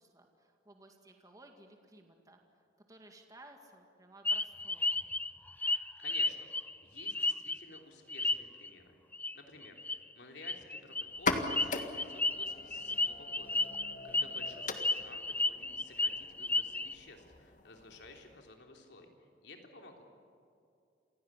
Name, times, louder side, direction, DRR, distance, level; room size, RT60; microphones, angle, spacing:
voice 1, 0.0-2.4 2.9-5.1, right 1 dB, 20° right, 3 dB, 2.1 m, -57 dB
sound 1, 4.2-7.8 8.1-8.7 9.1-9.3 9.6-10.0 10.4-16.9, left 2 dB, 10° left, 0.5 m, -33 dB
voice 2, 6.0-9.0 9.3-13.7 14.0-20.0, left 3 dB, 75° left, 2 dB, 3.5 m, -54 dB
sound 2, 11.1-18.5, left 3 dB, 45° left, 1.8 m, -40 dB
28.0 x 17.0 x 10.0 m, 2.5 s
head